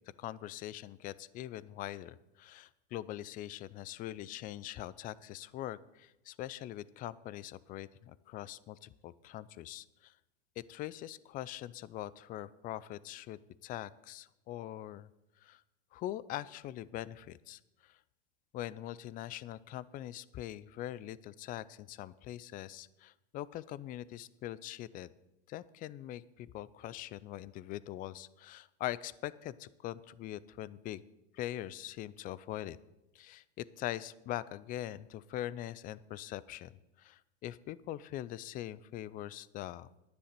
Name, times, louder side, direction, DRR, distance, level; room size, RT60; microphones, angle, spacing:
voice 1, 0.2-10.1 10.6-15.1 15.4-15.6 15.9-17.6 18.5-24.0 24.4-25.1 25.5-31.0 31.3-32.8 33.1-39.9, left 13 dB, 25° left, 19 dB, 0.4 m, -42 dB
10.5 x 10.0 x 6.7 m, 0.96 s
hypercardioid pair, 110°, 33 cm